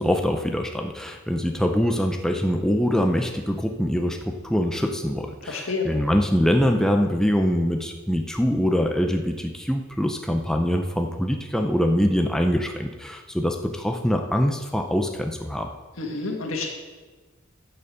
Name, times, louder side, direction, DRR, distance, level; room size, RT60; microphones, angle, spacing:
voice 1, 0.0-15.7, equal, 5° left, 4 dB, 0.6 m, -24 dB
voice 2, 5.5-5.9 16.0-16.7, left 4 dB, 90° left, 1 dB, 1.9 m, -28 dB
8.7 x 6.9 x 6.8 m, 1.3 s
head